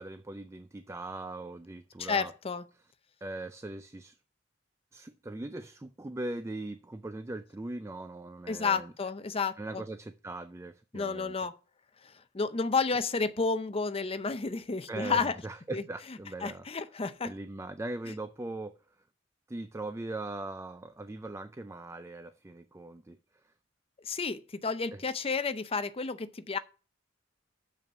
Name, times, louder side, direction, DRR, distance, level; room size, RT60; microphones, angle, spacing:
voice 1, 0.0-2.3 3.2-4.2 4.9-8.9 9.6-11.3 14.9-16.7 17.2-18.7 19.5-23.2 24.9-25.0, right 2 dB, 15° right, 0.4 m, -40 dB
voice 2, 2.0-2.6 8.5-9.8 10.9-11.6 12.0-15.4 15.7-15.8 16.4-17.3 24.0-26.6, left 4 dB, 30° left, 0.6 m, -31 dB
7.0 x 5.6 x 6.9 m
head